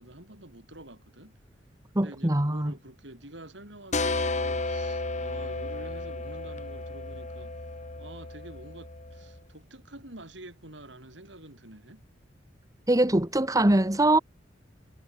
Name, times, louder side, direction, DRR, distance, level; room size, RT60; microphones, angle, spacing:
voice 1, 0.0-1.4 2.0-7.5 8.0-12.0, right 1 dB, 70° right, 7.1 m, -48 dB
voice 2, 1.9-2.7 12.9-14.2, right 1 dB, 20° right, 1.4 m, -22 dB
sound 1, 3.9-9.4, left 2 dB, 40° left, 2.7 m, -33 dB
head